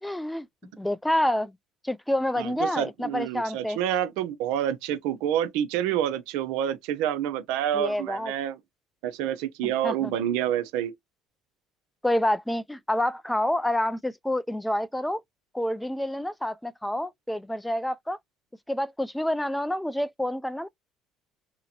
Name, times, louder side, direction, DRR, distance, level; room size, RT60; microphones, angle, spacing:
voice 1, 0.0-1.6 1.8-3.8 7.7-8.3 9.6-10.1 12.0-15.2 15.5-18.2 18.7-20.7, left 1 dB, 5° left, 0.4 m, -28 dB
voice 2, 2.4-8.6 9.0-10.9, right 10 dB, 80° right, 0.6 m, -28 dB
2.8 x 2.5 x 2.8 m
supercardioid pair, 95°, 0 cm